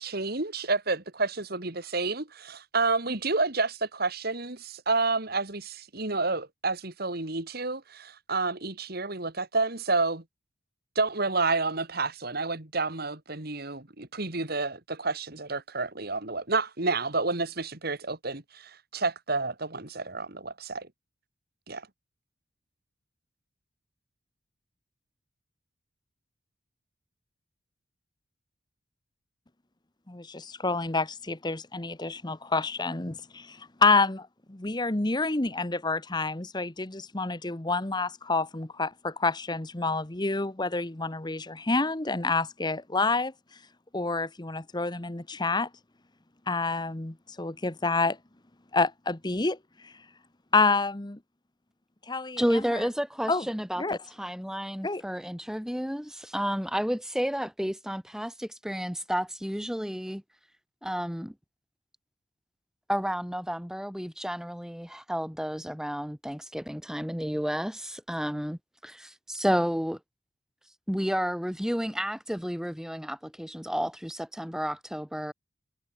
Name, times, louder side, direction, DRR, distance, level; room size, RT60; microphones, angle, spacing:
voice 1, 0.0-10.2 11.0-20.9 21.7-21.9, right 3 dB, 50° right, 2.4 m, -30 dB
voice 2, 30.1-43.3 43.9-45.7 46.5-48.2 48.7-49.6 49.8-49.9 50.5-51.2 52.1-52.8 53.3-53.4 53.8-54.0 54.8-55.0, left 3 dB, 20° left, 1.0 m, -28 dB
voice 3, 52.4-60.2 60.8-61.3 62.9-70.0 70.9-75.3, equal, 5° right, 2.0 m, -31 dB
head